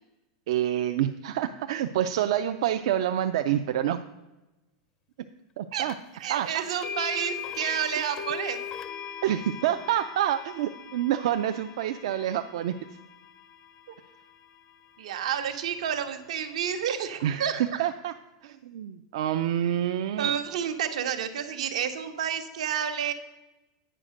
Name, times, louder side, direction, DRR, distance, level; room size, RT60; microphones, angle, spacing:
voice 1, 0.5-4.0 5.6-5.9 6.3-6.6 9.2-13.0 17.2-18.1 18.4-20.3, right 11 dB, 55° right, 8 dB, 0.3 m, -27 dB
sound 1, 5.9-6.0 6.8-14.9, left 8 dB, 15° left, 0.4 m, -40 dB
voice 2, 6.2-8.6 13.9-14.0 15.0-17.8 20.2-23.1, right 8 dB, 75° right, 8 dB, 1.0 m, -30 dB
8.8 x 5.0 x 6.4 m, 1.0 s
supercardioid pair, 180°, 3 cm